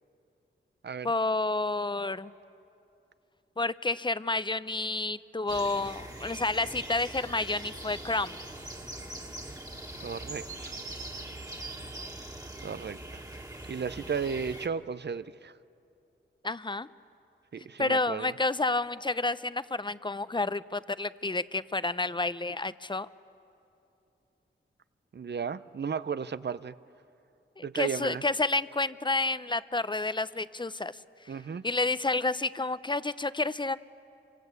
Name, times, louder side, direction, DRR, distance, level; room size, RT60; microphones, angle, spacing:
voice 1, 1.0-2.3 3.6-8.4 16.4-16.9 17.8-23.1 27.6-31.0 31.6-33.8, left 3 dB, 20° left, 14 dB, 0.8 m, -30 dB
sound 1, 5.5-14.7, right 1 dB, 15° right, 2.1 m, -42 dB
voice 2, 10.0-10.7 12.6-13.2 13.7-15.5 17.5-18.3 25.1-26.7 27.6-28.2 31.3-31.6, right 6 dB, 55° right, 15 dB, 0.8 m, -34 dB
27.0 x 24.5 x 8.2 m, 2.7 s
cardioid pair, 45°, 21 cm